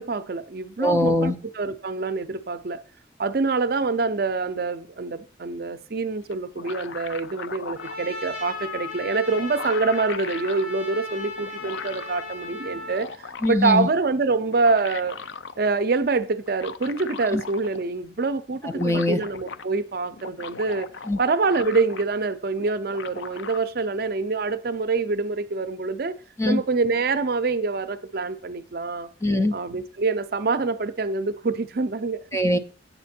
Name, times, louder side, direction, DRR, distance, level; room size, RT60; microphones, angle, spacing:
voice 1, 0.0-2.8 3.2-15.2 15.6-20.9 21.2-26.1 26.4-29.1 29.5-32.2, right 3 dB, 50° right, 0.5 m, -25 dB
voice 2, 0.8-1.3 13.4-13.9 17.3-17.4 18.6-19.2 21.1-21.2 26.4-26.6 29.2-29.5 32.3-32.6, left 1 dB, 15° left, 0.4 m, -22 dB
sound 1, 6.3-8.0 9.0-9.1 9.3-10.7 11.4-12.2 12.7-13.7 14.4-15.6 16.5-17.9 18.2-18.3 18.5-19.7 20.1-22.3 22.6-23.6, left 5 dB, 70° left, 0.5 m, -39 dB
Trumpet, 7.8-13.0, left 3 dB, 45° left, 4.0 m, -36 dB
8.3 x 6.7 x 4.3 m
head